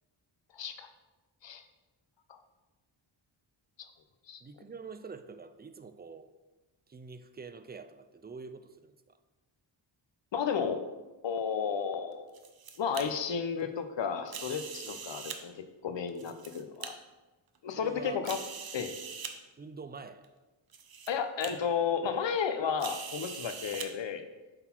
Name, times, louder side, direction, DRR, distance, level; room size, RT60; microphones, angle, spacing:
voice 1, 0.5-0.9 1.4-1.6 2.3-2.4 3.8-3.9 4.3-4.4 10.3-10.8 11.2-12.3 12.8-17.0 17.6-18.4 18.7-18.9 21.1-24.3, left 6 dB, 65° left, 9 dB, 0.8 m, -33 dB
voice 2, 4.4-6.3 6.9-9.2 14.8-15.0 16.2-16.4 17.8-18.2 19.6-20.2 23.7-23.8, right 5 dB, 20° right, 10 dB, 0.4 m, -46 dB
sound 1, 12.1-13.0 14.3-15.4 16.1-16.9 17.5-17.6 18.2-19.3 20.2-20.3 20.7-21.1 21.4-21.5 22.8-23.9, right 6 dB, 50° right, 0.7 m, -42 dB
7.8 x 4.0 x 4.4 m, 1.2 s
wide cardioid pair, 90°, 48 cm